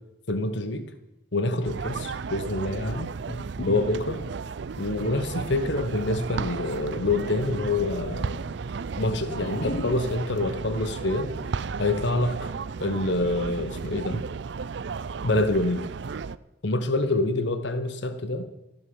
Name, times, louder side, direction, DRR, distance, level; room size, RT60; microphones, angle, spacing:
voice 1, 0.3-0.9 1.3-4.2 4.8-8.6 9.0-11.3 11.8-12.5 12.8-14.3 15.2-15.9 16.6-18.5, left 2 dB, 65° left, 10 dB, 1.0 m, -26 dB
sound 1, 1.6-16.4, right 5 dB, 60° right, 0.4 m, -34 dB
14.5 x 10.5 x 7.0 m, 0.94 s
head